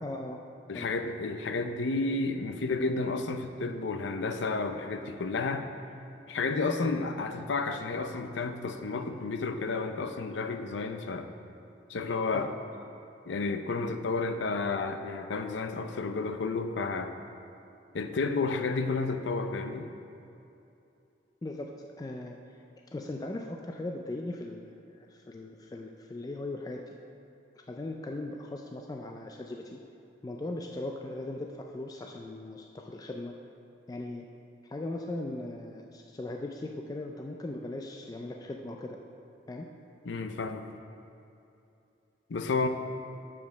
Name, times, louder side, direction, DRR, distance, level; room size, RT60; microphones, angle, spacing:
voice 1, 0.0-0.4 0.7-0.9 6.8-6.9 12.3-12.5 21.4-22.6 22.9-27.0 27.7-29.8 30.2-33.3 33.9-34.3 34.7-39.0 39.5-39.7, left 2 dB, 20° left, 2 dB, 0.3 m, -39 dB
voice 2, 0.7-5.7 6.3-11.3 11.9-12.5 13.3-17.1 17.9-19.9 40.0-40.7 42.3-42.7, left 3 dB, 80° left, 7 dB, 0.5 m, -31 dB
7.1 x 5.1 x 6.4 m, 2.7 s
head